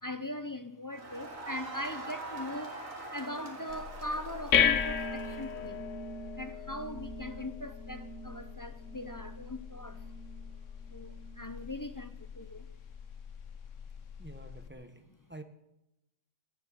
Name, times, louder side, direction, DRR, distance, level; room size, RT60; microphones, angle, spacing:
voice 1, 0.0-2.8 3.1-5.9 6.4-10.1 10.9-12.7, left 1 dB, 30° left, 0.3 m, -40 dB
Crowd, 0.9-5.7, right 2 dB, 75° right, 3.0 m, -43 dB
sound 1, 3.7-14.7, left 7 dB, 70° left, 1.2 m, -35 dB
voice 2, 14.2-15.4, right 2 dB, 10° right, 1.1 m, -49 dB
18.5 x 11.5 x 6.7 m
omnidirectional pair, 1.4 m